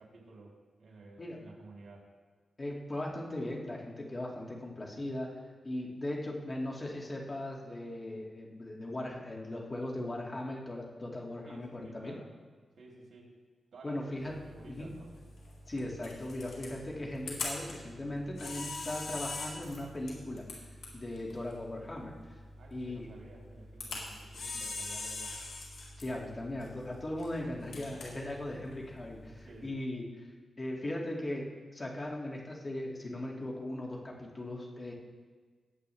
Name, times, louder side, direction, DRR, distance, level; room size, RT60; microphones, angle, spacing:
voice 1, 0.0-2.1 11.4-12.3 12.8-13.4 13.7-15.1 22.6-25.4 27.9-28.2 29.2-29.7, right 2 dB, 75° right, -3 dB, 3.2 m, -53 dB
voice 2, 2.6-5.4 5.6-12.2 13.8-14.4 14.7-14.9 15.7-20.5 20.9-22.1 22.7-23.1 26.0-30.3 30.6-34.9, left 1 dB, 30° left, -2 dB, 2.3 m, -38 dB
Camera, 14.2-29.7, left 3 dB, 85° left, 3.7 m, -43 dB
19.0 x 8.2 x 3.4 m, 1.5 s
wide cardioid pair, 105°, 0 cm